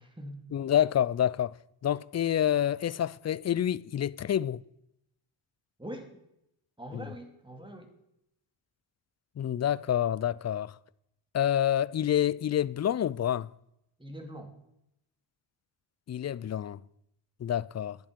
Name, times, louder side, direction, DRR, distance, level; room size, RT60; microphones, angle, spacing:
voice 1, 0.0-0.4 5.8-6.1 6.8-7.9 14.0-14.5, equal, 10° right, 2.6 m, -43 dB
voice 2, 0.5-1.6 1.8-4.6 6.9-7.1 9.4-10.8 11.3-13.5 16.1-16.8 17.4-18.0, left 10 dB, 35° left, 0.4 m, -28 dB
11.5 x 10.5 x 5.2 m
cardioid pair, 55°, 49 cm